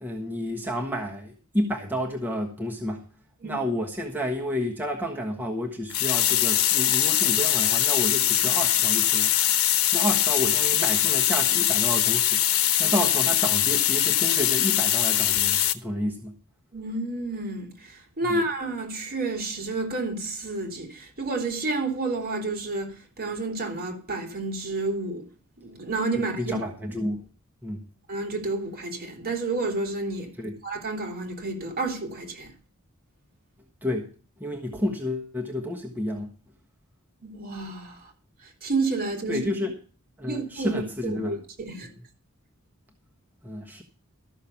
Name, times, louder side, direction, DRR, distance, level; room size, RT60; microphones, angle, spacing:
voice 1, 0.0-3.0 3.4-12.4 12.8-16.4 18.2-18.4 26.4-27.2 27.6-27.8 30.4-30.6 33.8-34.1 34.4-36.3 39.3-39.7 40.2-41.4 43.4-43.8, equal, 10° right, 1.3 m, -30 dB
sound 1, 5.9-15.7, left 12 dB, 75° left, 1.0 m, -22 dB
voice 2, 16.7-25.3 25.6-26.6 28.1-30.3 30.6-32.5 37.2-38.1 38.4-39.5 40.3-41.9, right 3 dB, 45° right, 3.6 m, -30 dB
13.5 x 6.5 x 7.1 m
head